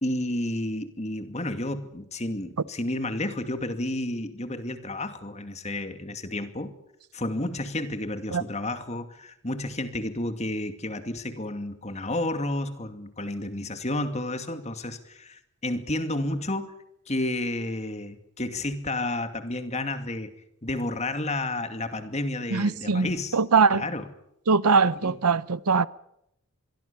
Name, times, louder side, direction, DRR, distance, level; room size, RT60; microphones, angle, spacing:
voice 1, 0.0-6.7 7.1-16.7 17.1-20.3 20.6-23.4 23.7-24.1 25.0-25.1, left 1 dB, 30° left, 2.4 m, -31 dB
voice 2, 22.5-23.1 23.3-23.8 24.5-25.9, right 5 dB, 90° right, 0.8 m, -21 dB
26.0 x 22.5 x 7.0 m
head